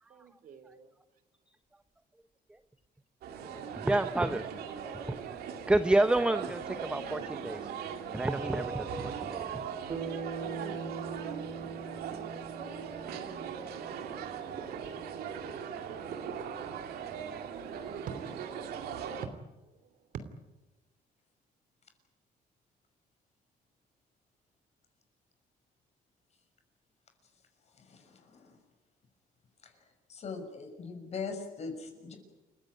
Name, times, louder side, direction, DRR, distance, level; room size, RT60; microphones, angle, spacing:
voice 1, 0.1-0.9 13.3-13.6 14.5-14.9 15.7-18.4 19.6-20.2, right 6 dB, 60° right, 11 dB, 3.0 m, -47 dB
sound 1, 3.2-19.3, right 7 dB, 85° right, 2.5 m, -39 dB
voice 2, 3.4-4.4 4.8-5.2 5.7-7.7 8.1-9.6, right 1 dB, 5° right, 10 dB, 0.7 m, -30 dB
Bass guitar, 9.9-14.3, right 5 dB, 30° right, 2.5 m, -41 dB
voice 3, 27.7-28.6 29.6-29.8 30.1-32.2, left 4 dB, 45° left, 5 dB, 6.1 m, -41 dB
29.0 x 16.0 x 9.7 m, 1.1 s
cardioid pair, 135°, 16 cm